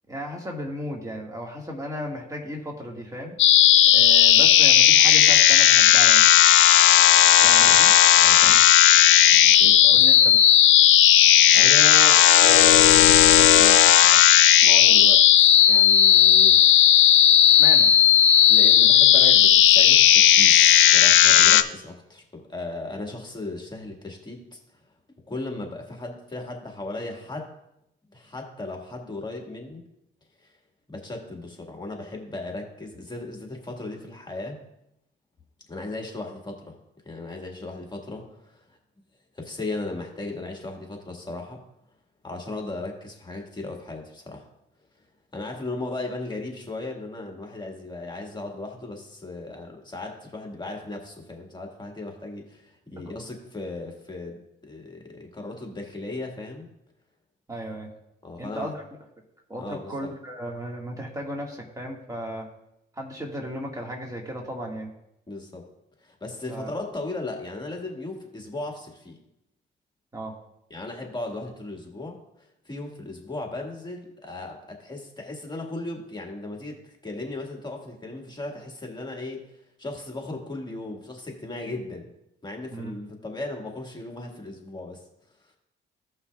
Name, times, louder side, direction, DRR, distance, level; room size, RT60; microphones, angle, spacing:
voice 1, 0.1-3.4 3.9-6.3 7.4-7.9 8.4-8.6 9.4-9.5 9.9-10.4 17.5-17.9 53.1-53.2 57.5-57.9 58.4-58.8 59.5-62.5 62.9-64.9 66.5-66.7 70.1-70.3 82.7-82.9, equal, 15° right, -1 dB, 1.7 m, -35 dB
sound 1, 3.4-21.6, left 11 dB, 75° left, 0.5 m, -15 dB
voice 2, 8.2-8.5 9.6-10.0 11.5-16.9 18.5-24.6 25.3-27.5 28.1-29.8 30.4-30.5 30.9-34.6 35.7-36.8 37.1-38.8 39.3-41.6 42.2-44.5 45.3-56.7 58.2-58.7 59.6-60.1 65.3-65.6 66.0-69.2 70.7-79.4 79.8-82.1 82.4-85.0, left 2 dB, 20° left, 1 dB, 1.8 m, -36 dB
15.5 x 5.7 x 2.3 m, 0.81 s
cardioid pair, 90°, 20 cm